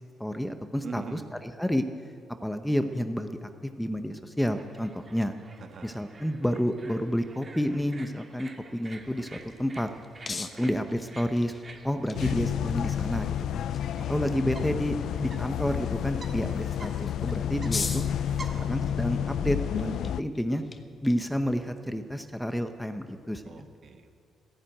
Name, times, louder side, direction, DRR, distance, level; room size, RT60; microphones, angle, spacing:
voice 1, 0.2-1.2 1.6-1.8 2.4-3.5 3.8-5.3 5.8-9.9 10.3-11.5 11.8-13.6 14.1-18.0 18.7-20.6 21.0-23.4, equal, 5° left, 8 dB, 0.9 m, -30 dB
voice 2, 0.8-1.3 5.6-6.0 10.4-10.7 13.9-14.2 18.2-18.7 19.7-19.9 23.5-24.1, right 5 dB, 55° right, 6 dB, 1.5 m, -44 dB
sound 1, 4.4-18.8, right 3 dB, 35° right, 1.8 m, -50 dB
sound 2, 8.9-23.4, left 4 dB, 30° left, 1.0 m, -44 dB
sound 3, 12.1-20.2, left 10 dB, 75° left, 0.4 m, -30 dB
14.0 x 11.0 x 9.1 m, 2.3 s
cardioid pair, 90°, 0 cm